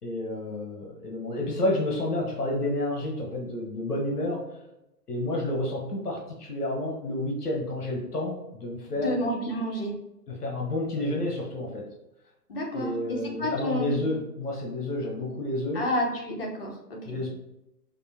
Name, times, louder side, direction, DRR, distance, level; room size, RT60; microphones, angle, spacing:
voice 1, 0.0-4.4 5.1-9.2 10.3-11.9 12.7-15.8 17.0-17.3, left 1 dB, 70° left, 0 dB, 1.1 m, -30 dB
voice 2, 9.0-10.0 12.5-14.0 15.7-17.2, equal, 35° left, -2 dB, 0.9 m, -30 dB
5.3 x 2.0 x 2.7 m, 0.90 s
figure-of-eight pair, 145°, 49 cm